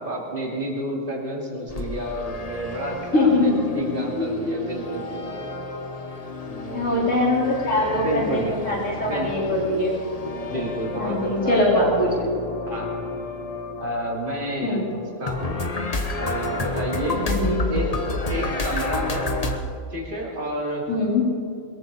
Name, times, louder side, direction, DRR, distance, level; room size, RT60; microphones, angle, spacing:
voice 1, 0.0-5.5 6.4-6.9 7.9-9.6 10.5-12.0 12.7-13.2 13.8-15.6 16.2-17.2 17.7-17.9 18.3-19.3 19.9-20.8, right 1 dB, 40° right, -2 dB, 3.2 m, -30 dB
sound 1, 1.7-19.6, left 2 dB, 30° left, 1.2 m, -31 dB
voice 2, 3.1-4.6 6.7-10.0 10.5-10.6 11.0-12.3 14.6-14.8 17.3-17.6 20.9-21.2, left 2 dB, 70° left, -5 dB, 5.1 m, -22 dB
22.5 x 14.5 x 4.3 m, 2.4 s
omnidirectional pair, 1.4 m